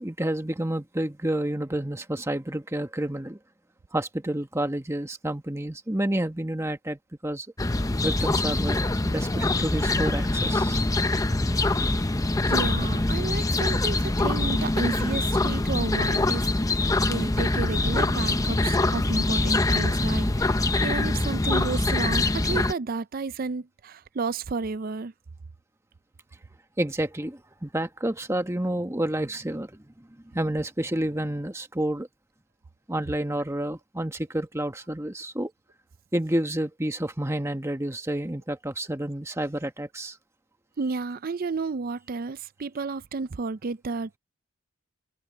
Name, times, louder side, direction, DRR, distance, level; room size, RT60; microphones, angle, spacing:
voice 1, 0.0-3.4 3.9-7.5 8.0-10.8 26.8-32.1 32.9-35.5 36.1-40.2, right 1 dB, 15° right, 1.2 m, -29 dB
sound 1, 7.6-22.7, left 2 dB, 15° left, 0.6 m, -24 dB
voice 2, 12.5-16.5 17.1-25.1 40.8-44.2, right 4 dB, 45° right, 0.4 m, -32 dB
head